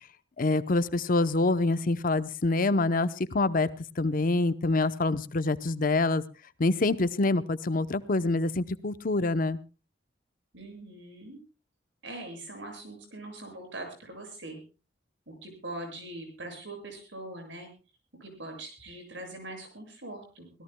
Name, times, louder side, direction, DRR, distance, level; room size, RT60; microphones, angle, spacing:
voice 1, 0.4-3.7 4.0-6.2 6.6-9.6, left 2 dB, 50° left, 13 dB, 0.7 m, -26 dB
voice 2, 10.5-11.4 12.0-14.6 15.3-17.7 18.2-20.6, right 2 dB, 70° right, 5 dB, 7.0 m, -42 dB
25.0 x 17.5 x 2.2 m, 0.33 s
head